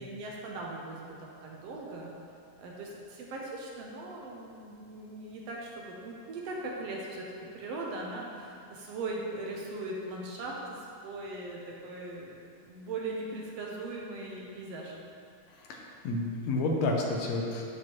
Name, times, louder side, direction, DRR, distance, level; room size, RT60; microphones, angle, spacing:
voice 1, 0.0-2.1 2.6-14.9, right 2 dB, 75° right, -2 dB, 1.5 m, -39 dB
voice 2, 15.7-17.6, left 2 dB, 75° left, 0 dB, 1.9 m, -30 dB
12.0 x 5.2 x 3.0 m, 2.4 s
omnidirectional pair, 3.6 m